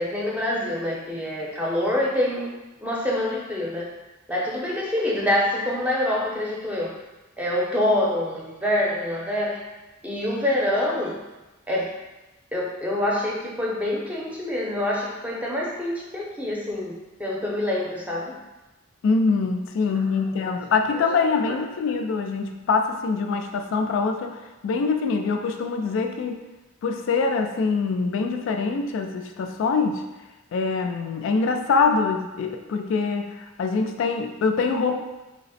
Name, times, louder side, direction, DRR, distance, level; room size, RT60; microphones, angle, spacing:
voice 1, 0.0-2.5 2.8-3.9 4.3-6.9 7.4-9.6 10.0-11.2 11.7-11.9 12.5-18.3 19.9-20.0 20.5-20.6 20.9-21.0, left 1 dB, 5° right, -4 dB, 0.6 m, -26 dB
voice 2, 19.0-26.4 26.8-30.0 30.5-34.9, left 4 dB, 65° left, 4 dB, 0.3 m, -24 dB
3.4 x 2.0 x 4.0 m, 1.1 s
head